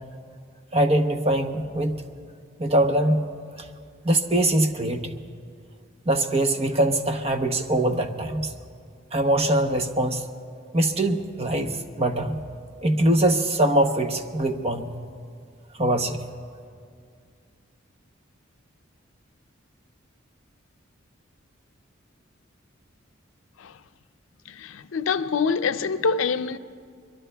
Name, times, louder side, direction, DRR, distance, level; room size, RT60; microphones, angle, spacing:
voice 1, 0.7-1.9 2.6-3.2 3.6-3.7 4.0-5.2 6.1-8.5 9.1-10.2 10.7-12.4 12.8-14.9 15.8-16.2, right 1 dB, 30° right, 0.7 m, -22 dB
voice 2, 24.5-26.6, left 5 dB, 75° left, 0.5 m, -25 dB
23.5 x 22.5 x 2.2 m
head